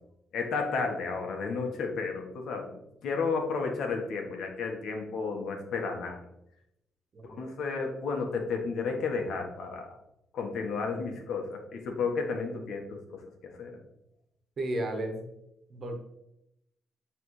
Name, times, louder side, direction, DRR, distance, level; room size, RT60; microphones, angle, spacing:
voice 1, 0.3-2.8 3.0-6.2 7.4-9.9 10.3-13.2 13.6-13.8, left 4 dB, 75° left, 3 dB, 1.3 m, -32 dB
voice 2, 14.6-15.3 15.7-16.0, right 1 dB, 45° right, 4 dB, 1.3 m, -33 dB
9.5 x 3.5 x 3.2 m, 0.83 s
cardioid pair, 105°, 0 cm